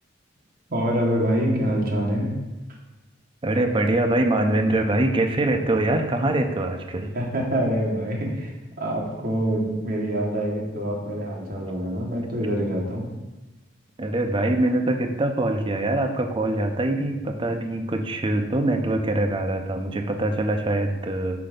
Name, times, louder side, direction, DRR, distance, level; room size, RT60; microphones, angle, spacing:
voice 1, 0.7-2.3 7.1-13.1, equal, 50° right, -2 dB, 1.4 m, -25 dB
voice 2, 3.4-7.1 14.0-21.5, right 1 dB, 25° right, 4 dB, 0.5 m, -23 dB
5.8 x 3.8 x 5.2 m, 1.1 s
head